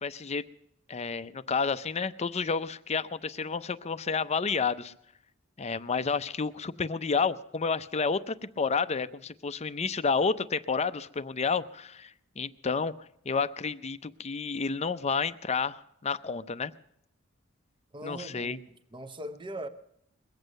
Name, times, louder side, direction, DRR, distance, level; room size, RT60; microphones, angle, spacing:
voice 1, 0.0-0.4 0.9-4.9 5.6-16.7 18.0-18.6, left 5 dB, 30° left, 0.6 m, -30 dB
voice 2, 17.9-18.6 18.9-19.7, right 1 dB, 25° right, 0.8 m, -39 dB
22.0 x 8.1 x 6.6 m
head